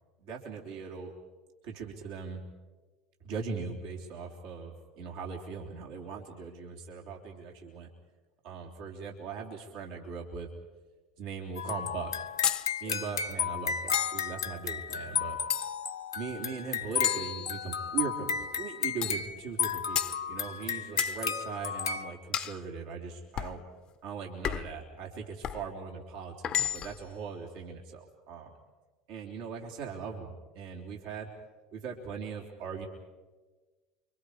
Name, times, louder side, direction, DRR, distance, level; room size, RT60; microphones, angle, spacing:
voice 1, 0.2-1.1 1.6-2.4 3.2-7.9 8.4-10.5 11.2-12.1 12.8-15.4 16.1-20.0 20.3-23.6 24.0-28.5 29.1-31.3 31.7-32.9, right 5 dB, 65° right, 0 dB, 3.5 m, -40 dB
sound 1, 11.6-22.1, left 7 dB, 85° left, 0.8 m, -34 dB
sound 2, 12.4-12.7 13.9-14.3 15.5-16.0 17.0-17.9 19.0-19.3 20.0-20.2 21.0-21.2 22.3-22.6 23.4-23.6 24.4-24.8 25.4-25.7 26.4-27.0, left 10 dB, 45° left, 0.8 m, -32 dB
29.0 x 24.5 x 5.0 m, 1.3 s
hypercardioid pair, 75°, 2 cm